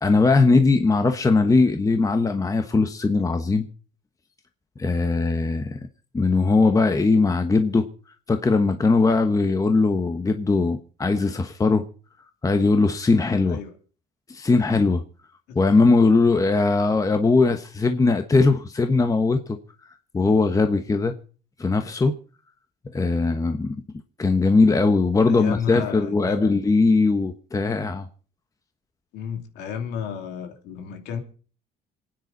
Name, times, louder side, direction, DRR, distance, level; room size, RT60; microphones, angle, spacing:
voice 1, 0.0-3.7 4.8-5.8 6.1-7.9 8.3-11.8 12.4-13.6 14.3-15.0 15.5-19.6 20.1-21.1 21.6-22.1 22.9-23.7 24.2-28.1, left 3 dB, 20° left, 1.2 m, -20 dB
voice 2, 25.3-26.6 29.1-31.2, left 7 dB, 90° left, 2.8 m, -32 dB
27.0 x 9.5 x 4.1 m
cardioid pair, 110°, 17 cm